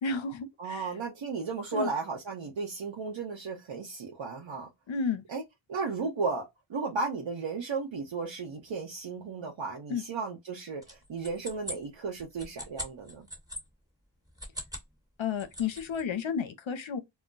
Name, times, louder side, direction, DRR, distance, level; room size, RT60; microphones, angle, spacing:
voice 1, 0.0-0.9 1.7-1.9 4.9-5.2 9.9-10.0 15.2-17.0, left 5 dB, 70° left, 0.7 m, -32 dB
voice 2, 0.6-4.7 5.3-5.4 5.7-13.3, right 4 dB, 65° right, 0.8 m, -34 dB
sound 1, 10.8-13.6 14.3-14.9 15.2-16.0, equal, 5° right, 1.4 m, -41 dB
2.2 x 2.2 x 3.8 m
cardioid pair, 55°, 49 cm